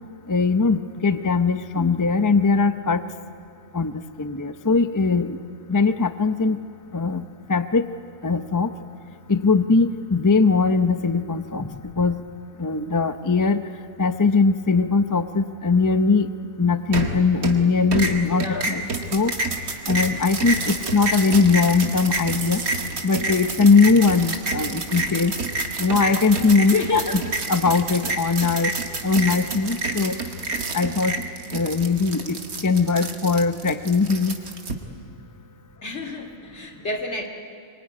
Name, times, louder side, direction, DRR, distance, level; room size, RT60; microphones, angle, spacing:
voice 1, 0.3-3.0 3.7-5.4 5.7-6.6 6.9-7.9 8.2-8.7 9.3-12.2 12.6-13.6 14.0-16.3 16.6-19.3 19.9-22.6 23.0-25.4 25.8-27.0 27.5-28.7 29.0-30.2 30.7-31.2 31.5-34.4, left 4 dB, 25° left, 10 dB, 0.4 m, -20 dB
sound 1, 16.9-17.6 17.9-34.7, right 3 dB, 90° right, 2.4 m, -28 dB
voice 2, 18.3-18.7 24.7-24.8 25.7-25.8 26.6-27.2 35.8-37.3, left 2 dB, 50° left, 3 dB, 2.8 m, -30 dB
24.5 x 24.5 x 9.6 m, 2.5 s
omnidirectional pair, 1.5 m